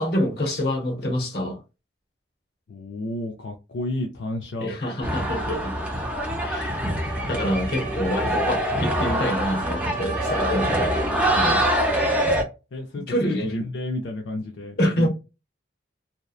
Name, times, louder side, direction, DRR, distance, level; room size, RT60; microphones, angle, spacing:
voice 1, 0.0-1.6 4.6-5.9 6.4-6.8 7.1-11.0 11.3-11.6 13.1-13.5 14.8-15.1, equal, 55° left, 0.9 m, -26 dB
voice 2, 2.7-4.7 12.7-15.1, left 1 dB, 75° left, 0.5 m, -31 dB
sound 1, 5.0-12.4, equal, 5° right, 0.6 m, -24 dB
sound 2, 6.7-11.7, right 6 dB, 45° right, 0.8 m, -36 dB
2.8 x 2.1 x 2.3 m
head